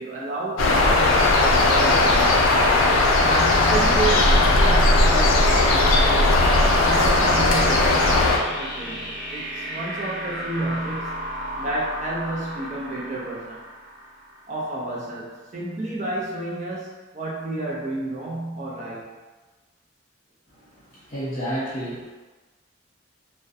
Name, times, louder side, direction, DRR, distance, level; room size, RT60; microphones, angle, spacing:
voice 1, 0.0-2.5 3.2-11.2 11.6-13.6 14.5-19.1, right 2 dB, 35° right, -4 dB, 0.4 m, -31 dB
sound 1, 0.6-8.4, left 2 dB, 85° left, 0.4 m, -18 dB
sound 2, 3.3-14.7, equal, ahead, 0.8 m, -34 dB
voice 2, 21.1-22.1, right 1 dB, 40° left, -9 dB, 1.0 m, -29 dB
2.3 x 2.1 x 2.6 m, 1.2 s
head